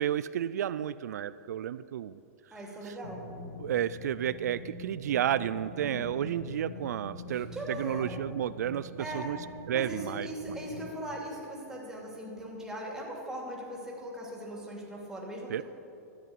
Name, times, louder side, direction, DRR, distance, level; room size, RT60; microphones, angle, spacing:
voice 1, 0.0-2.2 2.8-2.9 3.6-9.4 9.7-10.3 15.5-15.6, right 10 dB, 80° right, 15 dB, 0.3 m, -31 dB
voice 2, 2.5-3.2 5.8-6.1 7.3-8.1 9.0-9.3 9.7-15.6, right 1 dB, 5° right, -2 dB, 2.8 m, -40 dB
sound 1, 3.0-10.8, left 1 dB, 85° left, 2.3 m, -44 dB
13.5 x 8.5 x 7.3 m, 2.9 s
hypercardioid pair, 140°, 9 cm